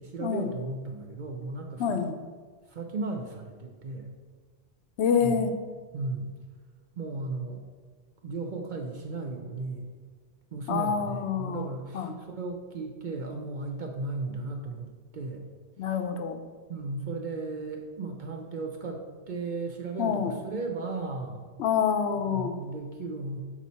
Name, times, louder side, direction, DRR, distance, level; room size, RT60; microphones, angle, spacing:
voice 1, 0.0-2.0 2.7-4.1 5.2-5.5 5.9-6.3 6.9-7.6 8.2-9.9 10.5-15.5 16.7-21.6 22.1-23.4, right 3 dB, 55° right, 2 dB, 0.6 m, -35 dB
voice 2, 1.8-2.1 5.0-5.5 10.7-11.7 11.9-12.1 15.8-16.4 20.0-20.3 21.6-22.5, left 7 dB, 75° left, 7 dB, 0.8 m, -27 dB
6.0 x 4.2 x 4.1 m, 1.5 s
omnidirectional pair, 1.2 m